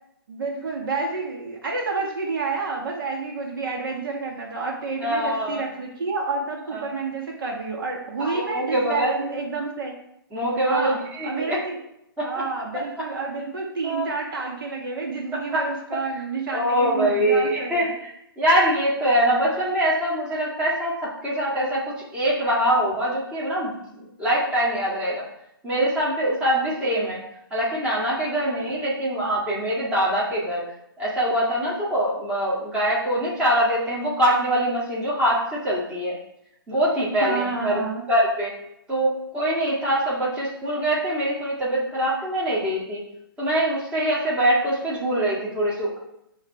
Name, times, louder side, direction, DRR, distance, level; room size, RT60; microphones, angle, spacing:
voice 1, 0.3-10.0 10.7-11.8 12.2-17.9 37.2-38.0, right 4 dB, 65° right, 0 dB, 1.8 m, -29 dB
voice 2, 5.0-5.6 6.7-6.9 8.2-9.1 10.3-11.6 12.2-12.3 13.8-14.1 15.5-15.6 16.5-25.2 25.6-27.2 27.5-30.6 31.0-36.1 36.7-37.8 38.1-38.5 38.9-43.0 43.4-46.0, right 1 dB, 10° right, -7 dB, 1.8 m, -23 dB
8.0 x 3.2 x 4.5 m, 0.80 s
hypercardioid pair, 145°, 12 cm